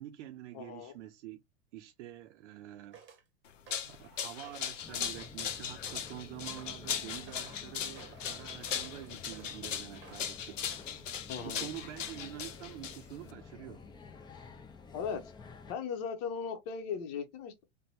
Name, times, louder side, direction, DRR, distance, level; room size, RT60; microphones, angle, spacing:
voice 1, 0.0-1.4 1.7-3.0 3.8-10.6 11.4-13.8, right 13 dB, 70° right, 0.5 m, -47 dB
voice 2, 0.5-0.9 11.3-11.7 14.9-15.3 15.7-17.6, left 6 dB, 55° left, 0.9 m, -38 dB
Walking up stairs, 2.9-3.2 3.7-4.0 4.4-4.8 5.1-5.5 5.9-6.2 6.6-6.8 7.3-7.6 7.9-8.3 8.6-10.3 10.7-10.9 11.4-11.7 12.1-12.2, right 6 dB, 30° right, 0.9 m, -55 dB
sound 1, 3.5-13.3, left 8 dB, 90° left, 0.7 m, -38 dB
sound 2, 4.8-15.7, left 4 dB, 10° left, 0.4 m, -51 dB
2.6 x 2.2 x 2.9 m
hypercardioid pair, 105°, 37 cm